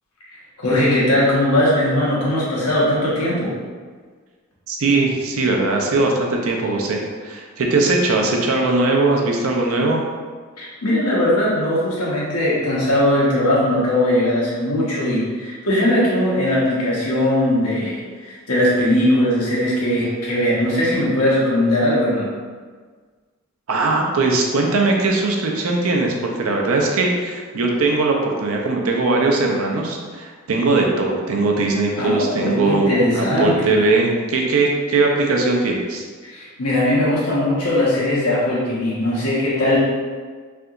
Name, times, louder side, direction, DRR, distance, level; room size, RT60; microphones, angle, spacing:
voice 1, 0.6-3.6 10.6-22.3 32.0-33.7 36.2-39.8, left 1 dB, 85° left, -6 dB, 1.0 m, -19 dB
voice 2, 4.7-10.0 23.7-36.1, right 3 dB, 70° right, 0 dB, 0.5 m, -20 dB
3.3 x 2.8 x 2.5 m, 1.5 s
head